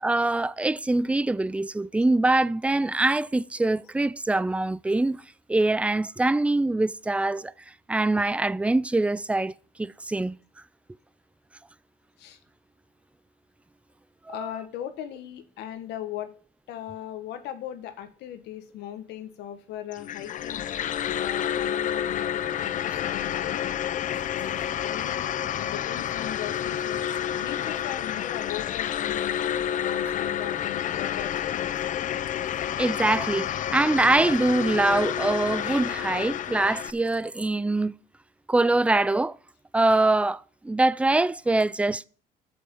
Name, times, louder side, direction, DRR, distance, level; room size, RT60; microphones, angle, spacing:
voice 1, 0.0-5.2 5.5-7.5 7.9-9.5 9.8-10.4 14.3-14.5 32.8-37.9 38.5-39.3 39.7-42.0, right 2 dB, 5° right, 0.4 m, -24 dB
voice 2, 14.3-16.3 16.7-20.6 21.1-23.8 24.3-27.0 27.3-29.4 29.8-31.7, left 11 dB, 80° left, 1.5 m, -38 dB
sound 1, 19.9-36.9, left 10 dB, 50° left, 0.6 m, -29 dB
8.3 x 7.7 x 7.1 m
cardioid pair, 110°, 17 cm